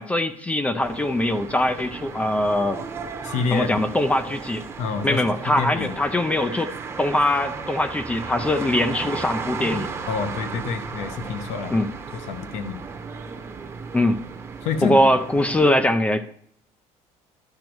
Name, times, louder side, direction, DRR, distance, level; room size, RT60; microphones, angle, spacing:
voice 1, 0.0-2.8 3.5-4.6 5.0-6.7 7.0-9.9 11.7-11.9 13.9-14.2 14.8-16.3, left 1 dB, 10° left, 10 dB, 0.3 m, -22 dB
sound 1, 0.8-15.7, right 5 dB, 20° right, 0.8 m, -35 dB
voice 2, 3.2-3.7 4.8-5.9 10.1-11.8 12.1-12.8 14.6-15.0, left 5 dB, 70° left, 9 dB, 1.0 m, -28 dB
12.0 x 5.2 x 4.5 m, 0.67 s
cardioid pair, 170°, 12 cm